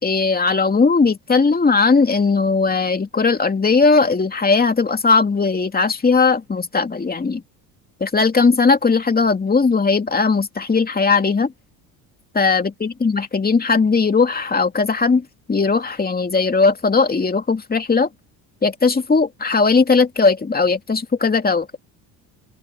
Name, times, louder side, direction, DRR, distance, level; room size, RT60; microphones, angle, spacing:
voice 1, 0.0-7.4 8.0-11.5 12.3-18.1 18.6-21.7, left 4 dB, 20° left, 2.5 m, -18 dB
supercardioid pair, 85°, 42 cm